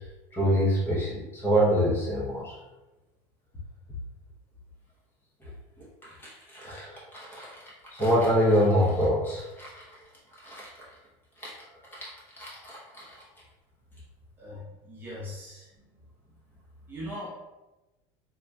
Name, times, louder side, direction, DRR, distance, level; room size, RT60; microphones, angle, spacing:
voice 1, 0.3-2.5 6.0-7.5 7.9-9.8 10.4-10.7 11.4-11.5 11.9-12.1 12.4-13.1, equal, 15° left, -7 dB, 0.9 m, -26 dB
voice 2, 14.8-15.7 16.9-17.3, equal, 15° right, -7 dB, 0.9 m, -39 dB
3.7 x 2.9 x 2.3 m, 1.1 s
cardioid pair, 160°, 12 cm